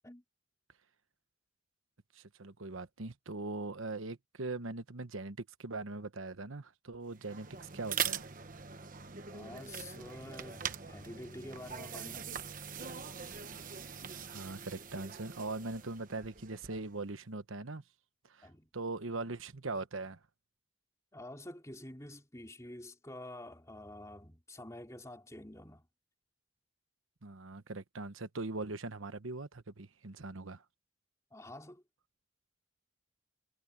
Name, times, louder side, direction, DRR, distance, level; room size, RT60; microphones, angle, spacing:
voice 1, 2.1-8.3 14.3-17.8 18.3-20.2 27.2-30.6, right 3 dB, 85° right, 1.2 m, -41 dB
sound 1, 7.1-17.0, right 7 dB, 40° right, 1.1 m, -42 dB
voice 2, 9.3-12.3 18.4-18.7 21.1-25.9 31.3-31.8, left 1 dB, 15° left, 3.8 m, -48 dB
head